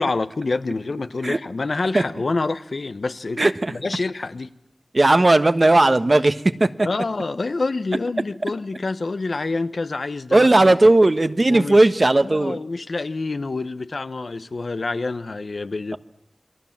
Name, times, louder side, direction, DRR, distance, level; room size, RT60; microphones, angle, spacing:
voice 1, 0.0-3.4 3.7-4.5 6.8-10.7 11.5-11.9 12.2-16.0, left 3 dB, 80° left, 12 dB, 1.0 m, -27 dB
voice 2, 3.4-3.7 4.9-6.9 10.3-12.6, right 2 dB, 50° right, 10 dB, 1.3 m, -16 dB
29.0 x 22.5 x 7.4 m, 0.72 s
wide cardioid pair, 50°, 0 cm